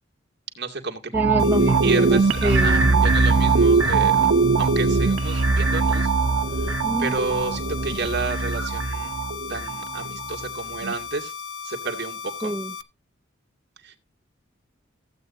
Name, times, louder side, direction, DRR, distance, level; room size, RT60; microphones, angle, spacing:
voice 1, 0.6-1.1 1.8-4.3 4.6-6.1 6.6-6.7 7.0-9.2 9.5-11.3 11.6-12.5 13.8-14.0, right 3 dB, 55° right, 2.2 m, -31 dB
voice 2, 1.1-3.0 6.8-7.1 12.4-12.7, right 1 dB, 10° right, 0.5 m, -26 dB
sound 1, 1.1-10.4 10.8-10.9, right 4 dB, 75° right, 0.8 m, -21 dB
sound 2, 1.4-12.8, left 6 dB, 60° left, 0.9 m, -36 dB
sound 3, 1.6-8.1, left 1 dB, 35° left, 2.8 m, -43 dB
15.5 x 8.4 x 2.6 m
head